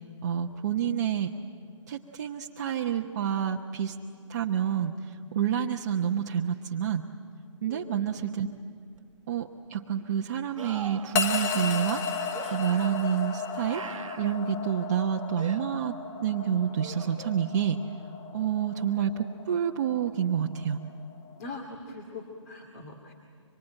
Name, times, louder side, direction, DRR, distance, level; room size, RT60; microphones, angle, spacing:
voice 1, 0.2-1.3 1.9-4.0 4.3-7.0 7.6-8.5 9.3-12.0 12.5-13.8 14.2-16.0 16.2-17.8 18.3-20.8, right 9 dB, 35° right, 2 dB, 0.9 m, -28 dB
voice 2, 7.7-8.1 21.4-23.1, left 2 dB, 30° left, 2 dB, 2.3 m, -42 dB
sound 1, 9.0-9.1 10.6-11.2 12.3-12.6 13.6-14.4 15.4-15.6 16.8-17.5 20.6-20.7, right 6 dB, 80° right, 1.1 m, -42 dB
sound 2, 11.1-21.5, left 5 dB, 15° left, 0.7 m, -35 dB
25.5 x 24.0 x 9.0 m, 2.5 s
hypercardioid pair, 160°, 16 cm